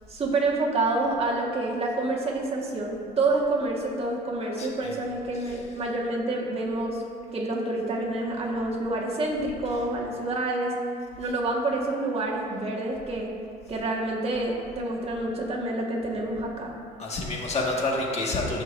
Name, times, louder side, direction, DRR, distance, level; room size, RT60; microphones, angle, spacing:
voice 1, 0.1-7.0 7.3-10.8 11.2-13.3 13.7-16.7, right 2 dB, 35° right, -2 dB, 1.6 m, -28 dB
voice 2, 4.6-4.9 17.0-18.6, left 2 dB, 40° left, -2 dB, 1.7 m, -28 dB
14.5 x 6.1 x 2.6 m, 2.3 s
cardioid pair, 110°, 17 cm